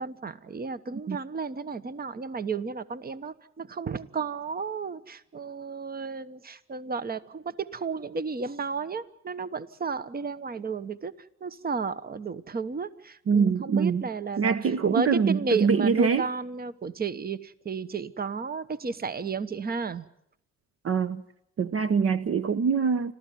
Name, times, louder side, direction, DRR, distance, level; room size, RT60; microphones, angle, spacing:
voice 1, 0.0-20.1, right 5 dB, 30° right, 1.1 m, -33 dB
voice 2, 13.3-14.0 14.4-16.2 20.8-21.2 21.6-23.1, right 6 dB, 50° right, 0.9 m, -24 dB
29.0 x 13.5 x 9.2 m
cardioid pair, 90°, 30 cm